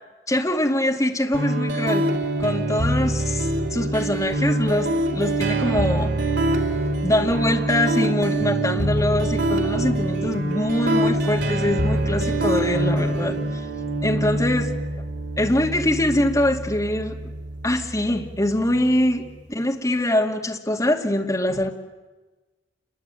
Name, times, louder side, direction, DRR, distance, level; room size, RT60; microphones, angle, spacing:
voice 1, 0.3-2.1 2.4-6.1 7.0-13.6 14.0-14.7 15.4-17.3 17.6-21.7, left 1 dB, 20° left, 2 dB, 2.3 m, -23 dB
sound 1, 1.3-19.3, right 1 dB, 85° right, 3.8 m, -25 dB
28.5 x 23.0 x 9.1 m, 1.2 s
head